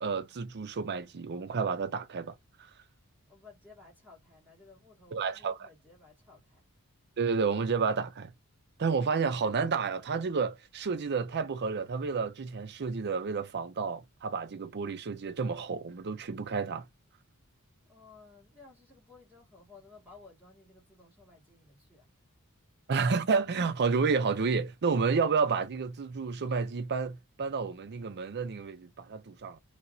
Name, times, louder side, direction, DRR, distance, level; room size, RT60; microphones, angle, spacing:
voice 1, 0.0-2.4 5.1-5.7 7.2-8.3 8.8-16.9 22.9-29.6, right 5 dB, 50° right, 0.5 m, -30 dB
voice 2, 3.3-6.6 17.9-22.1, left 3 dB, 5° right, 1.8 m, -56 dB
3.4 x 2.8 x 2.6 m
head